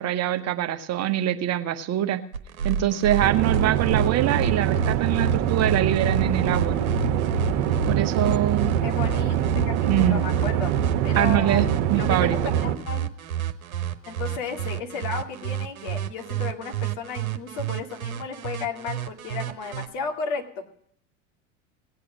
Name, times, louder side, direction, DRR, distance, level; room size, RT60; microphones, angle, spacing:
voice 1, 0.0-2.2 2.6-6.8 7.9-8.7 9.9-10.2 11.1-12.4, right 12 dB, 40° right, 9 dB, 1.1 m, -24 dB
sound 1, 2.3-19.9, right 5 dB, 85° right, 1.0 m, -29 dB
sound 2, 3.2-12.8, right 11 dB, 60° right, 1.2 m, -24 dB
voice 2, 8.8-10.7 11.0-13.1 14.1-20.6, left 5 dB, 50° left, 3 dB, 2.4 m, -34 dB
18.0 x 8.4 x 5.2 m, 0.68 s
hypercardioid pair, 85°, 41 cm